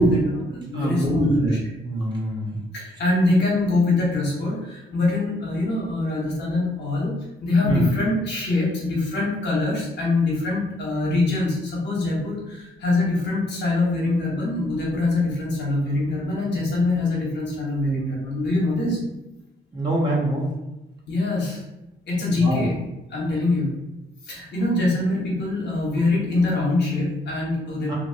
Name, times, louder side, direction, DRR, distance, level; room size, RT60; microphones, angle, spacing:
voice 1, 0.0-1.6 2.7-7.1 7.4-19.0 21.1-21.6 22.1-22.8 23.1-23.7 24.2-28.0, left 2 dB, 60° left, -4 dB, 1.2 m, -24 dB
voice 2, 0.7-1.6 1.8-2.5 7.6-7.8 19.7-20.5 22.4-22.6 27.9-28.0, right 1 dB, 20° right, -5 dB, 1.1 m, -23 dB
2.8 x 2.6 x 2.8 m, 0.96 s
cardioid pair, 90°, 20 cm